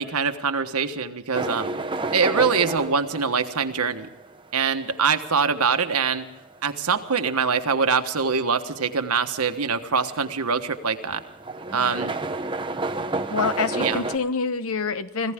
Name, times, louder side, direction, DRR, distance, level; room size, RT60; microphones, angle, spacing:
voice 1, 0.0-1.8 2.1-4.1 4.5-6.2 6.6-11.2 11.7-12.2 13.7-14.0, right 5 dB, 85° right, 7 dB, 1.3 m, -24 dB
sound 1, 1.3-14.2, right 2 dB, 20° right, 0.8 m, -32 dB
voice 2, 13.3-15.3, left 4 dB, 70° left, 12 dB, 1.0 m, -26 dB
25.5 x 15.5 x 3.7 m, 1.0 s
head